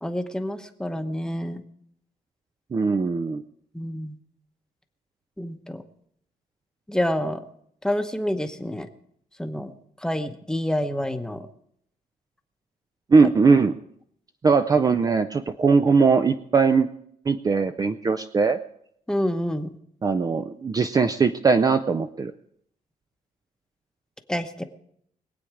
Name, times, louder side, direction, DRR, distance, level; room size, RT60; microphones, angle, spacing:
voice 1, 0.0-1.6 3.7-4.2 5.4-5.8 6.9-7.4 7.8-8.9 9.4-9.7 10.0-11.5 13.2-13.3 19.1-19.7 24.3-24.6, left 1 dB, 5° left, 7 dB, 1.0 m, -28 dB
voice 2, 2.7-3.4 13.1-13.8 14.4-16.9 17.3-18.6 20.0-22.3, right 4 dB, 25° right, 9 dB, 0.5 m, -20 dB
22.5 x 8.6 x 4.9 m, 0.71 s
cardioid pair, 140°, 15 cm